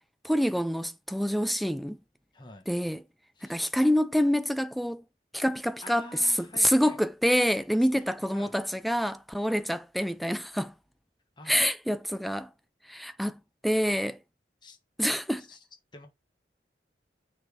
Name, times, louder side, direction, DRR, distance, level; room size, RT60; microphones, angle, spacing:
voice 1, 0.2-2.0 2.7-3.0 3.4-5.0 5.3-6.1 6.4-10.7 11.5-12.5 12.9-14.2 15.0-15.4, equal, ahead, 0.4 m, -27 dB
voice 2, 2.3-2.7 3.3-3.6 5.8-7.0 7.8-8.6 11.4-11.6 14.6-14.8 15.4-15.6 15.9-16.1, left 2 dB, 25° left, 1.3 m, -48 dB
6.5 x 4.0 x 6.4 m
head